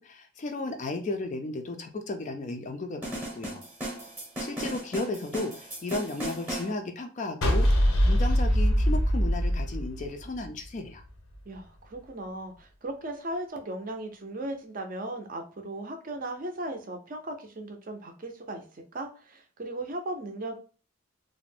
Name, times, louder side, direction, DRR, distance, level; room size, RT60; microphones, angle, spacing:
voice 1, 0.0-3.6 4.4-11.0, left 2 dB, 35° left, 6 dB, 0.3 m, -34 dB
sound 1, 3.0-6.7, equal, 10° right, 0.7 m, -36 dB
sound 2, 7.4-10.6, equal, 80° left, 0.6 m, -23 dB
voice 2, 11.5-20.6, right 1 dB, 40° right, 4 dB, 0.5 m, -37 dB
2.4 x 2.0 x 3.3 m, 0.38 s
head